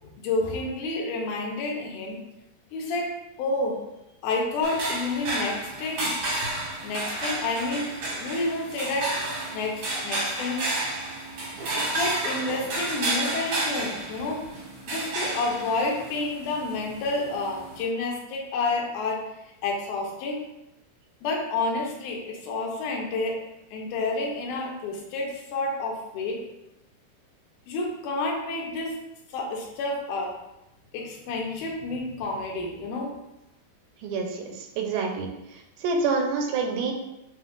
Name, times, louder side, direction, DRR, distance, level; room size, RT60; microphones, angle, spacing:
voice 1, 0.0-2.3 2.7-3.8 4.2-9.2 9.5-10.6 11.8-14.5 14.9-19.3 19.6-20.4 21.2-23.4 23.7-26.4 27.7-28.9 29.3-30.3 30.9-33.1, left 3 dB, 85° left, -1 dB, 2.1 m, -30 dB
sound 1, 4.6-17.8, right 2 dB, 65° right, 1.3 m, -31 dB
voice 2, 34.0-35.3 35.8-36.9, right 4 dB, 85° right, 2 dB, 2.2 m, -27 dB
7.1 x 2.5 x 2.4 m, 0.90 s
omnidirectional pair, 3.8 m